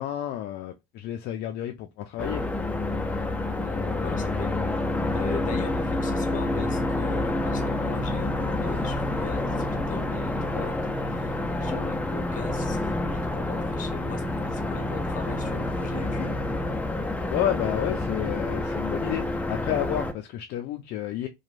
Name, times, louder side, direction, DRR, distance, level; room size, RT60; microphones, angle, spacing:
voice 1, 0.0-2.5 17.3-21.3, left 12 dB, 60° left, 0.4 m, -30 dB
sound 1, 2.2-20.1, left 2 dB, 5° left, 0.5 m, -28 dB
voice 2, 3.6-4.6 5.1-16.4, left 6 dB, 40° left, 0.8 m, -39 dB
2.9 x 2.2 x 2.4 m
supercardioid pair, 90°, 20 cm